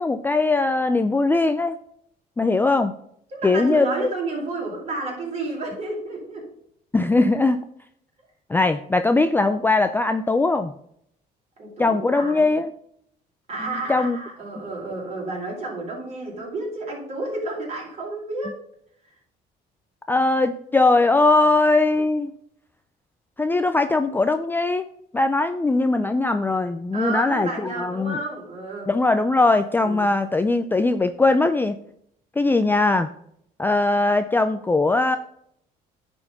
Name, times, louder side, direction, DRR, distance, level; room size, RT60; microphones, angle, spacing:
voice 1, 0.0-1.8 2.4-2.9 3.4-4.1 6.9-7.6 8.5-10.7 11.8-12.7 13.6-14.2 20.1-22.3 23.4-24.9 25.1-28.2 28.9-31.8 32.4-33.1 33.6-35.2, left 3 dB, 10° left, 9 dB, 0.4 m, -20 dB
voice 2, 3.3-6.5 11.6-12.5 13.5-18.6 26.9-28.9 29.8-30.1, right 2 dB, 40° right, -2 dB, 4.1 m, -31 dB
10.0 x 4.4 x 5.5 m, 0.70 s
cardioid pair, 110°, 17 cm